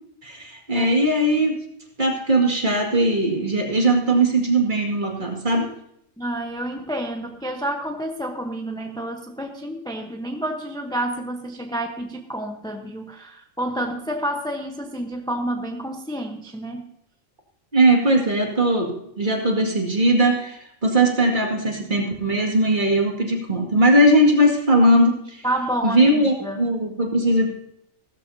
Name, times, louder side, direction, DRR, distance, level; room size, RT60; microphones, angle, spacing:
voice 1, 0.2-1.6 2.0-5.7 17.7-25.5 25.8-27.5, right 1 dB, 40° right, 1 dB, 2.3 m, -19 dB
voice 2, 6.2-16.9 25.4-26.6, right 1 dB, 5° left, 3 dB, 0.9 m, -29 dB
16.0 x 13.5 x 2.8 m, 0.74 s
omnidirectional pair, 1.3 m